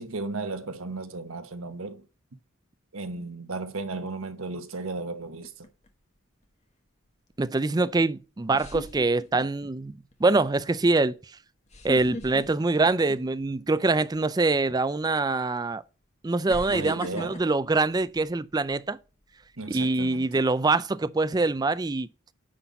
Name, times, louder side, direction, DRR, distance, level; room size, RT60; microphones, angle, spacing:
voice 1, 0.0-2.0 2.9-5.5 16.7-17.4 19.6-20.4, right 3 dB, 85° right, 1.1 m, -35 dB
sound 1, 5.4-5.9 7.8-7.9 8.5-9.7 10.1-10.4 11.7-13.5 13.9-14.2 15.2-15.3 16.5-18.7 19.2-19.5, left 1 dB, 35° left, 1.5 m, -39 dB
voice 2, 7.4-11.2 11.8-15.8 16.2-19.0 19.7-22.1, right 3 dB, 20° right, 0.4 m, -24 dB
9.9 x 4.0 x 7.0 m
head